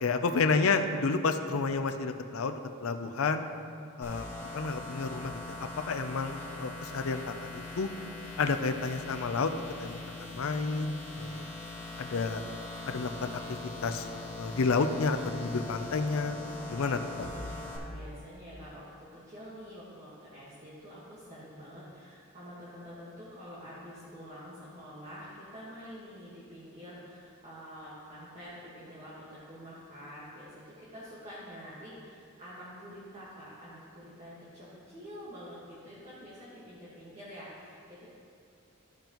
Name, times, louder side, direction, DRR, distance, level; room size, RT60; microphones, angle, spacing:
voice 1, 0.0-3.5 4.0-7.5 7.8-7.9 8.4-9.5 9.8-11.4 12.0-12.4 12.9-13.4 13.8-14.1 14.4-16.4 16.7-17.3, left 4 dB, 70° left, 7 dB, 0.5 m, -30 dB
sound 1, 4.0-17.8, left 2 dB, 10° left, 1.5 m, -42 dB
voice 2, 16.4-38.0, equal, 30° right, -9 dB, 1.5 m, -47 dB
14.5 x 5.2 x 3.0 m, 2.4 s
head